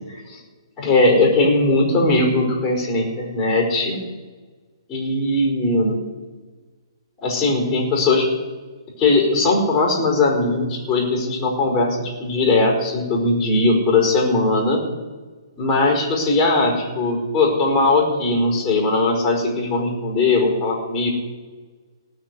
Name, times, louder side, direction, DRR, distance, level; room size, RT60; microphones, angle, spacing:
voice 1, 0.1-0.4 0.8-4.0 4.9-5.9 7.2-8.3 9.0-14.8 15.6-21.1, left 2 dB, 15° left, -2 dB, 4.6 m, -19 dB
18.0 x 6.6 x 9.5 m, 1.4 s
hypercardioid pair, 155°, 3 cm